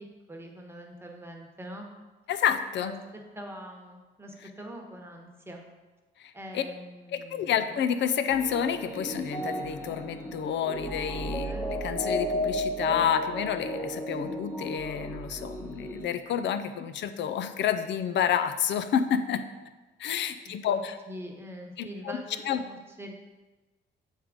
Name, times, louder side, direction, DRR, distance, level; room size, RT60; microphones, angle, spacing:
voice 1, 0.0-1.9 2.8-2.9 3.3-5.6 6.3-7.8 11.4-11.7 20.4-23.1, equal, 10° right, 1 dB, 1.2 m, -43 dB
voice 2, 2.3-2.9 6.2-6.6 7.1-11.5 11.8-19.4 20.0-20.9 21.8-21.9 22.5-22.6, left 8 dB, 65° left, 10 dB, 0.5 m, -29 dB
sound 1, 8.3-16.1, equal, 10° left, 1.1 m, -34 dB
7.2 x 3.7 x 5.0 m, 1.2 s
cardioid pair, 90°, 20 cm